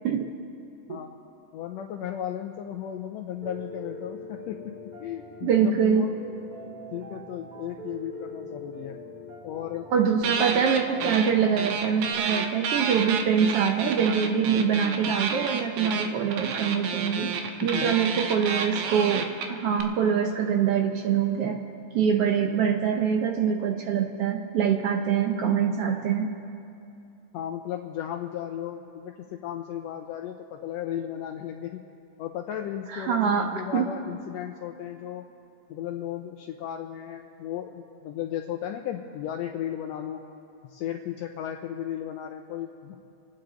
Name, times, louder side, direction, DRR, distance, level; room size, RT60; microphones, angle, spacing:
voice 1, 1.5-4.7 5.0-6.1 6.9-9.0 9.4-9.9 10.2-10.5 17.6-17.9 27.3-31.8 32.2-33.2 33.5-35.2 35.7-40.2 40.7-43.0, left 10 dB, 75° left, 3 dB, 1.7 m, -35 dB
Piano, 3.4-12.1, equal, 25° right, 1.0 m, -42 dB
voice 2, 5.4-6.1 9.9-17.3 17.6-21.6 21.9-26.3 32.9-33.9, right 7 dB, 70° right, 3 dB, 1.5 m, -24 dB
sound 1, 10.2-11.3 11.6-19.8, right 6 dB, 90° right, 2.3 m, -30 dB
28.5 x 9.7 x 3.9 m, 2.6 s
omnidirectional pair, 3.4 m